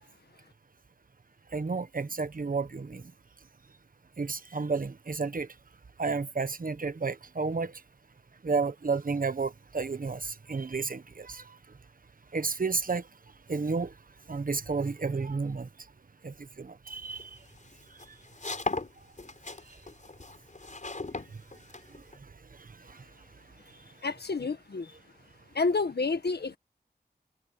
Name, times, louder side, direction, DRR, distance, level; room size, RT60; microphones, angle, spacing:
voice 1, 1.5-3.0 4.2-5.5 6.0-7.7 8.4-11.4 12.3-13.0 13.5-13.9 14.3-15.7 16.2-17.3, right 4 dB, 55° right, 1.2 m, -31 dB
sound 1, 17.0-22.2, left 3 dB, 45° left, 6.0 m, -38 dB
voice 2, 24.0-24.9 25.5-26.6, left 4 dB, 75° left, 1.5 m, -29 dB
wide cardioid pair, 85°, 17 cm